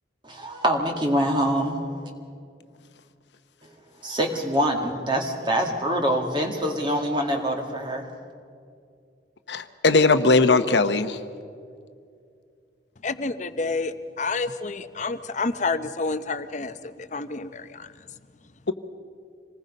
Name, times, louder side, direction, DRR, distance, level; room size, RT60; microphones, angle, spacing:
voice 1, 0.2-2.1 4.0-8.1, equal, 25° right, 2 dB, 2.1 m, -25 dB
voice 2, 9.5-11.2, left 3 dB, 80° left, 10 dB, 1.0 m, -19 dB
voice 3, 13.0-17.9, left 3 dB, 45° left, 11 dB, 0.8 m, -29 dB
26.5 x 19.5 x 5.3 m, 2.3 s
head